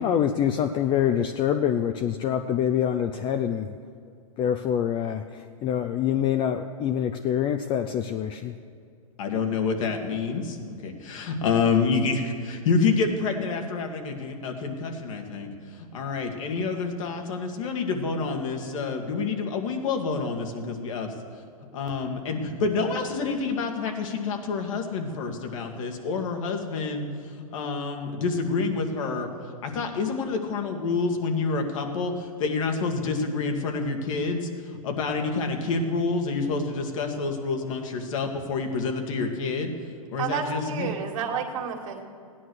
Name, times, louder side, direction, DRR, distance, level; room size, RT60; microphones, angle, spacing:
voice 1, 0.0-3.7 4.4-8.6, left 9 dB, 25° left, 8 dB, 0.5 m, -25 dB
voice 2, 9.2-10.6 10.8-15.5 15.8-21.1 21.7-27.1 27.5-29.3 29.6-34.5 34.8-39.7 40.1-40.9, left 4 dB, 60° left, 3 dB, 2.1 m, -28 dB
voice 3, 40.2-42.1, right 6 dB, 60° right, 3 dB, 2.1 m, -30 dB
16.0 x 10.0 x 6.4 m, 2.4 s
hypercardioid pair, 125°, 19 cm